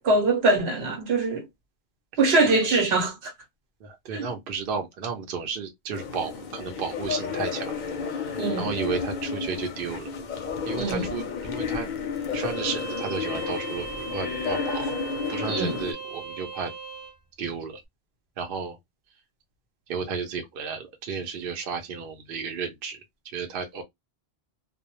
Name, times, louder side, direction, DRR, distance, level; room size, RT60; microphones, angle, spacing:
voice 1, 0.0-1.5 2.2-3.3 4.1-4.3 8.4-8.7 10.8-11.0 15.5-15.8, right 2 dB, 85° right, 1.0 m, -23 dB
voice 2, 3.8-7.8 8.1-8.2 8.6-10.1 10.7-11.9 12.3-14.9 15.3-16.7 17.4-17.8 18.4-18.8 19.9-23.8, right 5 dB, 65° right, 0.8 m, -33 dB
sound 1, 5.9-15.9, left 6 dB, 55° left, 0.6 m, -32 dB
Bowed string instrument, 12.3-17.2, right 4 dB, 25° right, 0.9 m, -38 dB
2.1 x 2.0 x 2.8 m
omnidirectional pair, 1.0 m